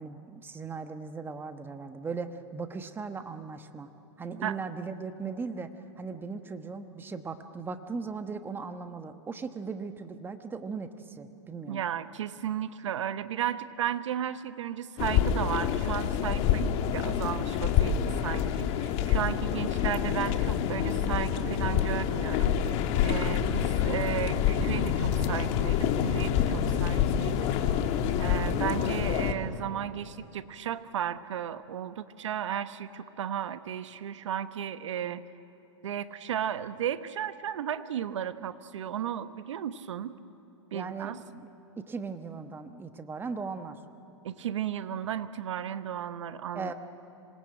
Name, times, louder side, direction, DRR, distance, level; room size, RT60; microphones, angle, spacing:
voice 1, 0.0-3.9 4.2-11.8 19.5-19.7 40.7-41.5 41.8-43.8 46.5-46.7, right 4 dB, 15° right, 8 dB, 1.2 m, -38 dB
voice 2, 11.7-27.5 28.2-35.2 35.8-40.1 40.7-41.2 44.2-46.7, right 9 dB, 75° right, 12 dB, 1.1 m, -34 dB
sound 1, 15.0-29.3, left 9 dB, 40° left, 1.7 m, -27 dB
26.0 x 19.0 x 8.9 m, 2.9 s
hypercardioid pair, 120°, 16 cm